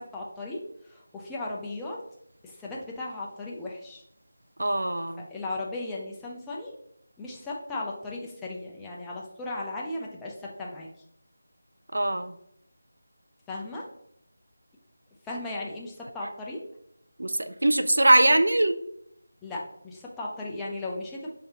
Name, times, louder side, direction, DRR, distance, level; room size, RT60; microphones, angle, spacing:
voice 1, 0.0-2.0 2.4-4.0 5.3-6.8 7.2-10.9 13.5-13.9 15.2-16.6 19.4-21.3, left 2 dB, 5° left, -4 dB, 0.5 m, -36 dB
voice 2, 4.6-5.3 11.9-12.4 17.2-18.8, right 1 dB, 75° right, 10 dB, 0.4 m, -22 dB
5.5 x 3.3 x 2.8 m, 0.74 s
figure-of-eight pair, 165°, 0 cm